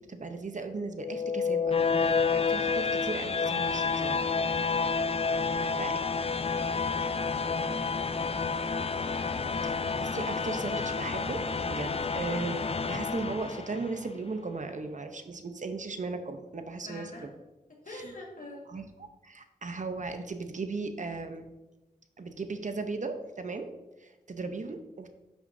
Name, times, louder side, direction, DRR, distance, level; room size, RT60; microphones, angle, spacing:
voice 1, 0.0-4.3 5.8-6.0 9.6-9.7 10.0-17.3 17.9-18.1 18.7-18.9 19.2-21.5 22.2-23.7 24.0-25.1, right 3 dB, 60° right, 7 dB, 0.8 m, -37 dB
sound 1, 1.0-14.0, left 5 dB, 45° left, 0.4 m, -29 dB
voice 2, 5.4-6.6 6.9-8.7 9.1-9.6 16.8-17.3 17.7-18.7, left 2 dB, 65° left, -1 dB, 1.8 m, -48 dB
10.5 x 6.1 x 2.7 m, 1.0 s
wide cardioid pair, 80°, 15 cm